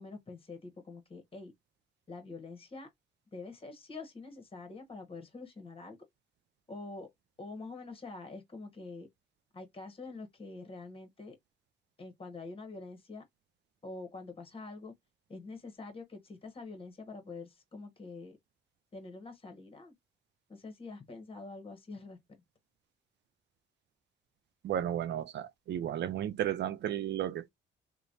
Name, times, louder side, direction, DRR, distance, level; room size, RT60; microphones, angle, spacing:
voice 1, 0.0-1.5 2.1-2.9 3.3-6.0 6.7-7.1 7.4-9.1 9.5-11.4 12.0-13.2 13.8-14.9 15.3-18.4 18.9-19.9 20.5-22.2, left 3 dB, 30° left, 1.1 m, -45 dB
voice 2, 24.6-27.5, right 11 dB, 60° right, 0.4 m, -33 dB
3.0 x 2.2 x 2.5 m
cardioid pair, 90°, 20 cm